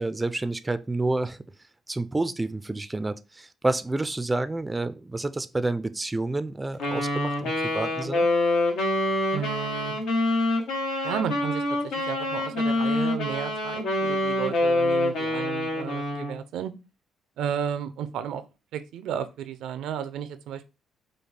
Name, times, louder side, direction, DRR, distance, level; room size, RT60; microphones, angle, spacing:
voice 1, 0.0-1.4 1.9-8.3, right 2 dB, 15° right, 0.3 m, -29 dB
Wind instrument woodwind instrument, 6.8-16.4, left 1 dB, 85° left, 1.1 m, -26 dB
voice 2, 9.3-9.9 11.0-16.7 17.4-18.4 18.7-20.7, right 8 dB, 85° right, 0.4 m, -33 dB
4.9 x 2.3 x 3.2 m
cardioid pair, 90°, 0 cm